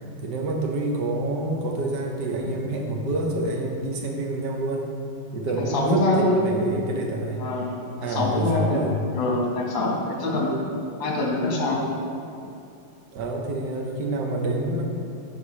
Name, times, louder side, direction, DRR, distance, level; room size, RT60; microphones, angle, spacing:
voice 1, 0.2-4.9 5.3-7.5 8.0-8.9 13.1-14.8, right 1 dB, 65° right, 1 dB, 1.4 m, -27 dB
voice 2, 5.7-6.4 7.4-7.7 8.1-8.8 9.1-10.5 11.0-11.9, left 1 dB, 80° left, -2 dB, 2.0 m, -24 dB
12.0 x 4.3 x 3.2 m, 2.6 s
omnidirectional pair, 2.0 m